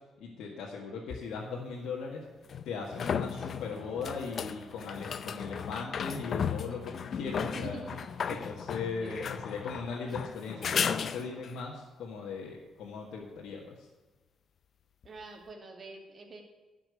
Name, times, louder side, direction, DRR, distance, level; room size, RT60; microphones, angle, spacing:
voice 1, 0.2-2.2 2.6-7.8 8.2-13.9, left 4 dB, 80° left, -4 dB, 1.8 m, -39 dB
sound 1, 1.1-1.2 2.5-11.6 15.0-15.1, left 7 dB, 55° left, 0.5 m, -35 dB
sound 2, 3.2-11.4, left 2 dB, 35° left, 4.1 m, -53 dB
voice 2, 7.5-8.0 8.3-8.4 9.0-9.3 15.0-16.4, right 4 dB, 40° right, 2 dB, 2.4 m, -45 dB
12.0 x 6.0 x 8.3 m, 1.2 s
cardioid pair, 90°, 0 cm